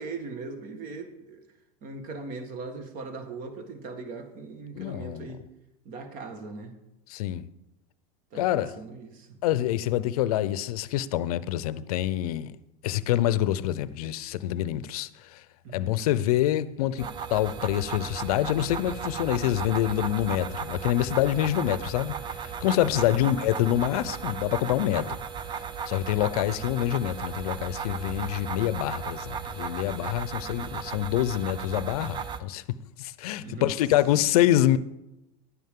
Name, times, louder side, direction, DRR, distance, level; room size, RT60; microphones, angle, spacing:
voice 1, 0.0-1.4 1.8-5.4 5.8-6.7 8.3-9.4 15.6-16.0 23.0-23.3 33.4-33.7, right 3 dB, 45° right, 1.6 m, -39 dB
voice 2, 4.7-5.3 7.1-7.5 8.3-8.7 9.4-12.6 12.8-15.4 15.7-25.1 25.9-34.8, left 13 dB, 80° left, 0.6 m, -26 dB
sound 1, 17.0-32.4, right 7 dB, 25° right, 0.5 m, -35 dB
11.5 x 9.4 x 3.7 m
supercardioid pair, 125°, 19 cm